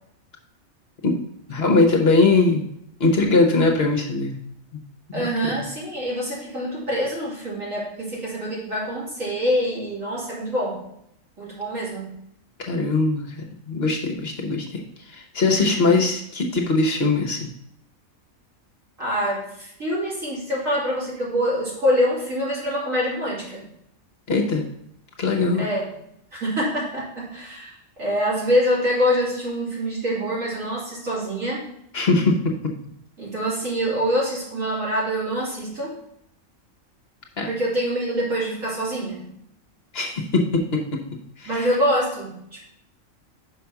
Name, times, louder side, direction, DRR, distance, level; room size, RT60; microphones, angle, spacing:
voice 1, 1.5-2.7 3.0-4.4 4.7-4.8 5.1-5.2 12.6-13.3 13.7-14.8 15.1-17.5 24.3-24.6 25.2-25.6 31.9-32.5 37.4-37.5 39.9-40.8 41.4-41.7, left 3 dB, 50° left, 1 dB, 1.2 m, -21 dB
voice 2, 5.1-10.8 11.4-12.1 15.5-15.9 19.0-23.7 25.6-25.9 26.3-31.6 33.2-36.0 37.4-39.3 41.5-42.7, equal, 75° right, -7 dB, 3.4 m, -25 dB
5.7 x 5.0 x 5.8 m, 0.75 s
omnidirectional pair, 1.4 m